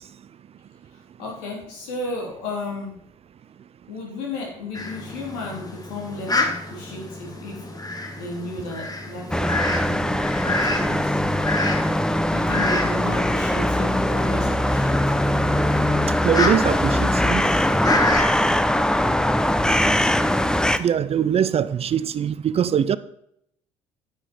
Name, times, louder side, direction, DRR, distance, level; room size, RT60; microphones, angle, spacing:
voice 1, 1.2-3.0 3.9-7.6 8.2-11.2 12.3-15.3, left 2 dB, 70° left, 4.0 m, -34 dB
Fowl, 4.7-18.5, left 2 dB, 25° left, 1.8 m, -30 dB
sound 1, 9.3-20.8, left 1 dB, 5° left, 0.8 m, -21 dB
voice 2, 16.2-17.4 20.8-23.0, right 8 dB, 40° right, 0.6 m, -22 dB
10.0 x 9.1 x 4.7 m
hypercardioid pair, 55°, 16 cm